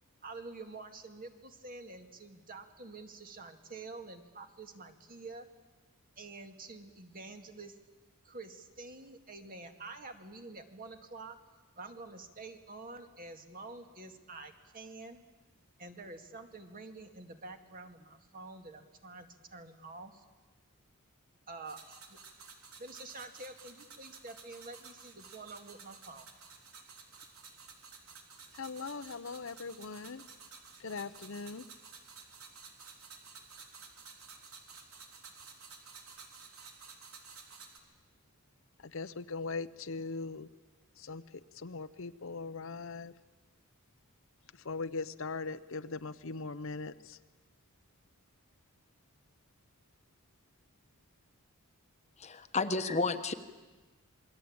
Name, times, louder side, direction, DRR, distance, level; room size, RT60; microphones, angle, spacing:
voice 1, 0.2-5.5 6.2-7.8 8.2-11.3 11.8-15.2 15.8-20.2 21.5-22.2 22.8-26.3, right 3 dB, 40° right, 6 dB, 2.1 m, -48 dB
sound 1, 21.7-37.8, right 5 dB, 80° right, 3.6 m, -53 dB
voice 2, 28.5-30.2 30.8-31.6 38.9-40.5 41.0-41.2 41.6-43.1 44.6-47.2, left 4 dB, 65° left, 12 dB, 0.8 m, -40 dB
voice 3, 52.2-53.3, left 3 dB, 30° left, 9 dB, 1.1 m, -31 dB
27.5 x 21.5 x 8.8 m, 1.3 s
head